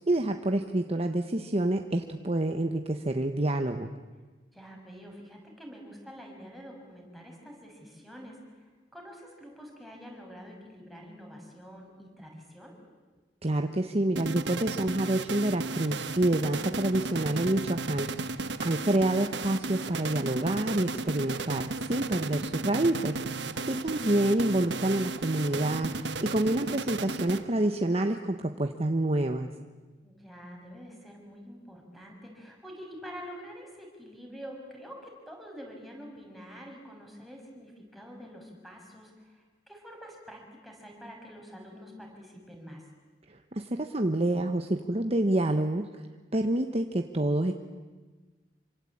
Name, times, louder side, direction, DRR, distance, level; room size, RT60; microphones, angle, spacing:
voice 1, 0.0-3.9 13.4-18.3 18.6-23.3 23.7-29.5 43.5-45.9 46.3-47.5, right 1 dB, 35° right, 5 dB, 1.2 m, -27 dB
voice 2, 4.5-12.8 30.0-42.8, equal, ahead, 0 dB, 6.4 m, -47 dB
sound 1, 14.2-27.8, right 3 dB, 85° right, 1.3 m, -35 dB
27.0 x 25.5 x 8.7 m, 1.3 s
head